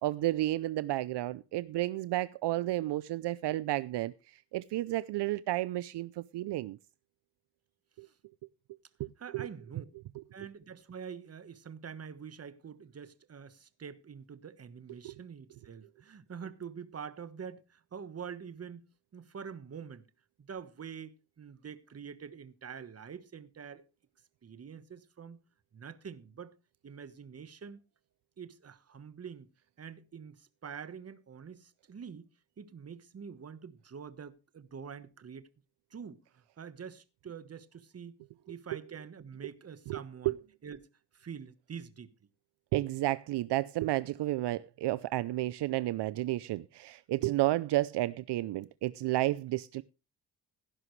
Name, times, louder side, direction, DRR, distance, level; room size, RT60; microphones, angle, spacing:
voice 1, 0.0-4.1 4.5-6.8 8.0-8.1 9.0-9.5 15.0-15.1 39.9-40.0 40.3-40.4 42.7-49.8, right 16 dB, 70° right, 0.6 m, -31 dB
voice 2, 9.2-9.8 10.3-18.8 19.1-20.1 20.4-23.8 24.4-25.4 25.7-26.5 26.8-27.8 28.4-29.5 29.8-32.3 32.6-35.5 35.9-38.2 38.5-40.4 40.6-40.8 41.1-42.1, right 7 dB, 35° right, 1.2 m, -46 dB
16.0 x 11.0 x 3.2 m
cardioid pair, 105°, 43 cm